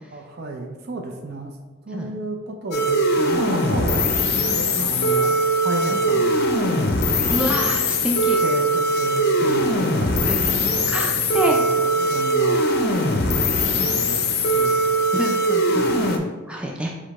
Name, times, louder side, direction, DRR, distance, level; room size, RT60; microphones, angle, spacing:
voice 1, 0.1-1.5 1.8-6.5 7.1-7.5 8.1-12.7 13.2-14.2 14.5-15.0 15.7-16.1, right 2 dB, 55° right, 3 dB, 0.6 m, -33 dB
sound 1, 2.7-16.2, equal, 55° left, 0.5 m, -21 dB
voice 2, 7.3-8.4 10.3-10.5 10.9-11.6 13.8-13.9 15.1-16.0 16.5-16.9, equal, 5° right, -1 dB, 0.4 m, -27 dB
4.9 x 2.2 x 4.1 m, 1.3 s
head